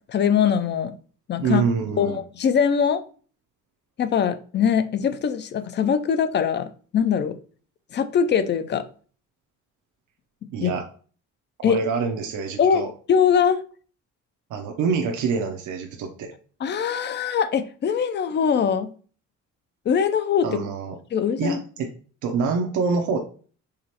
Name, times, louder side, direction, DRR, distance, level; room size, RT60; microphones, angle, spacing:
voice 1, 0.1-0.9 1.3-1.6 2.0-3.0 4.0-7.3 7.9-8.8 10.6-10.7 11.6-11.8 12.6-12.8 13.1-13.6 16.6-18.9 19.9-20.5 21.1-21.6, left 7 dB, 35° left, 0.4 m, -22 dB
voice 2, 1.4-2.2 10.5-10.8 11.6-12.9 14.5-16.3 20.4-21.0 21.4-21.9 22.2-23.2, right 5 dB, 75° right, 0.7 m, -26 dB
4.9 x 3.0 x 2.9 m
cardioid pair, 140°, 30 cm